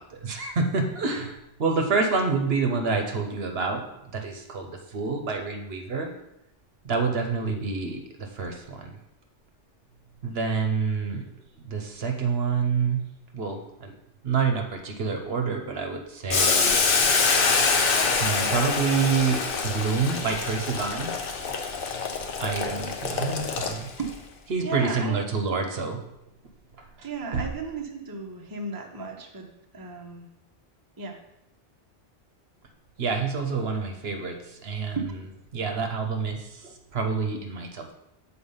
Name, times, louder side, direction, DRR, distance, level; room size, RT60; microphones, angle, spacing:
voice 1, 0.0-3.8 4.1-6.1 6.8-9.0 10.2-11.2 11.6-13.0 13.3-13.9 14.2-16.8 18.2-21.1 22.4-23.9 24.5-26.0 26.8-27.1 27.3-27.4 33.0-35.2 35.5-37.9, right 5 dB, 60° right, 4 dB, 1.0 m, -28 dB
Boiling, 16.3-24.1, left 4 dB, 55° left, 0.9 m, -25 dB
voice 2, 24.6-25.3 27.0-29.5 29.7-30.3 31.0-31.2 35.0-35.1, right 4 dB, 20° right, 1 dB, 0.7 m, -34 dB
7.1 x 4.3 x 5.5 m, 0.86 s
omnidirectional pair, 1.2 m